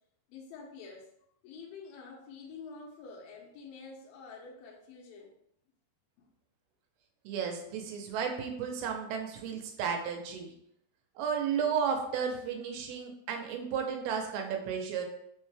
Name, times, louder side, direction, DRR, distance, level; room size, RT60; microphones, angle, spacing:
voice 1, 0.3-1.1 1.4-5.3 6.2-6.3, left 4 dB, 85° left, -1 dB, 2.1 m, -48 dB
voice 2, 7.3-10.5 11.2-15.0, right 7 dB, 85° right, 3 dB, 2.6 m, -33 dB
5.8 x 2.1 x 3.2 m, 0.73 s
omnidirectional pair, 4.4 m